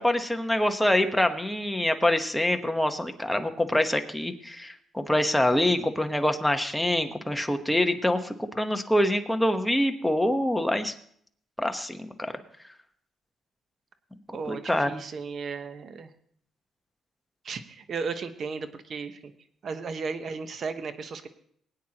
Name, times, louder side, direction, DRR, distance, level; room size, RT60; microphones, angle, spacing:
voice 1, 0.0-10.9 11.6-12.3 14.5-15.0, left 1 dB, 5° left, 6 dB, 1.1 m, -25 dB
voice 2, 14.3-16.1 17.4-19.3 19.6-21.3, right 5 dB, 55° right, 9 dB, 1.1 m, -35 dB
20.5 x 9.3 x 2.9 m, 0.64 s
cardioid pair, 90°, 0 cm